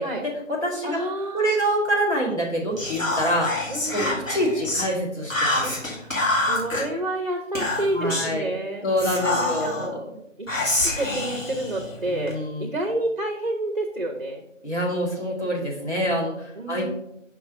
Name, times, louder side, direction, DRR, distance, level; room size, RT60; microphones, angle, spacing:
voice 1, 0.0-1.0 1.3-3.5 3.9-5.8 7.9-8.5 8.8-10.1 12.1-12.7 14.6-16.9, equal, 60° left, -4 dB, 2.3 m, -26 dB
voice 2, 0.8-1.6 3.7-4.2 5.9-8.9 9.4-10.0 10.4-14.4 16.6-16.9, right 1 dB, 45° right, 2 dB, 0.6 m, -29 dB
Whispering, 2.8-4.9 5.3-6.8 7.5-8.4 9.0-9.9 10.5-12.3, left 2 dB, 90° left, 2.1 m, -26 dB
5.3 x 3.9 x 5.1 m, 0.81 s
figure-of-eight pair, 165°, 39 cm